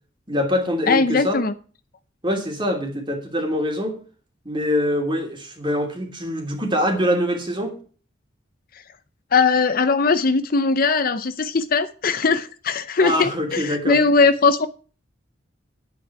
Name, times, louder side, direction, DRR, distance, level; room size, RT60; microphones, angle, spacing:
voice 1, 0.3-1.4 2.2-4.0 4.4-7.8 13.0-14.0, equal, 25° right, 2.9 m, -24 dB
voice 2, 0.9-1.5 9.3-14.7, left 4 dB, 50° left, 0.6 m, -19 dB
11.0 x 8.8 x 4.7 m
head